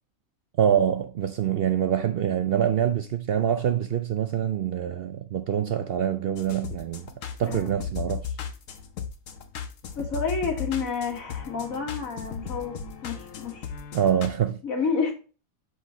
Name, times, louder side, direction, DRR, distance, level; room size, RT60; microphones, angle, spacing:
voice 1, 0.6-7.1 7.4-8.3 13.9-14.6, right 9 dB, 65° right, 0.6 m, -25 dB
sound 1, 6.4-14.3, left 7 dB, 70° left, 1.2 m, -36 dB
voice 2, 7.4-7.9 10.0-13.7 14.6-15.1, left 5 dB, 90° left, 2.2 m, -30 dB
6.3 x 5.3 x 2.9 m
omnidirectional pair, 1.4 m